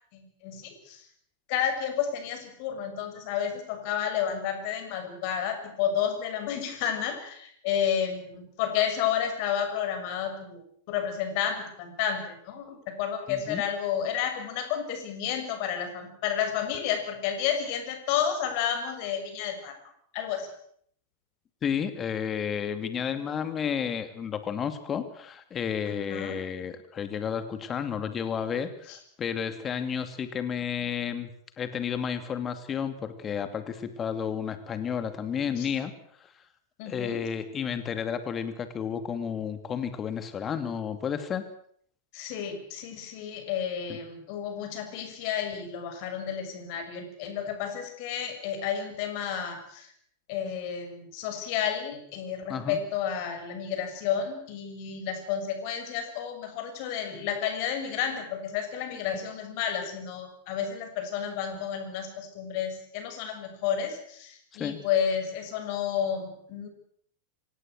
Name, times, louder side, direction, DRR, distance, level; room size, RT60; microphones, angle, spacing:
voice 1, 0.1-1.0 1.5-19.8 20.1-20.5 25.9-26.4 28.9-29.0 35.6-35.7 36.8-37.2 42.1-49.9 50.3-66.7, left 8 dB, 45° left, 6 dB, 6.6 m, -31 dB
voice 2, 13.3-13.6 21.6-31.3 31.6-35.9 36.2-36.3 36.9-41.5 43.9-44.0 52.5-52.8 64.6-64.8, left 7 dB, 25° left, 10 dB, 2.5 m, -32 dB
26.0 x 17.5 x 8.0 m, 0.66 s
figure-of-eight pair, 90°, 0 cm